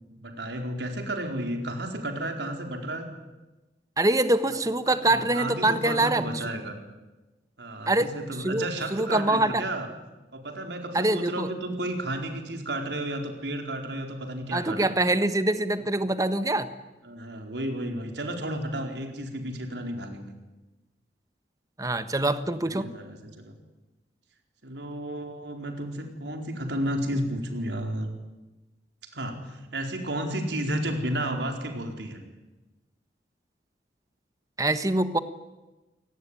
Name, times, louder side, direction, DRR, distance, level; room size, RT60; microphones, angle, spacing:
voice 1, 0.2-3.1 4.9-6.8 7.6-9.9 10.3-15.0 17.0-20.3 22.7-23.5 24.6-28.1 29.1-32.2, right 1 dB, 80° right, 4 dB, 4.5 m, -32 dB
voice 2, 4.0-6.4 7.9-8.1 8.4-8.7 8.9-9.6 10.9-11.5 14.5-16.7 21.8-22.9 34.6-35.2, right 2 dB, 20° right, 11 dB, 1.3 m, -24 dB
27.5 x 19.0 x 9.9 m, 1.1 s
head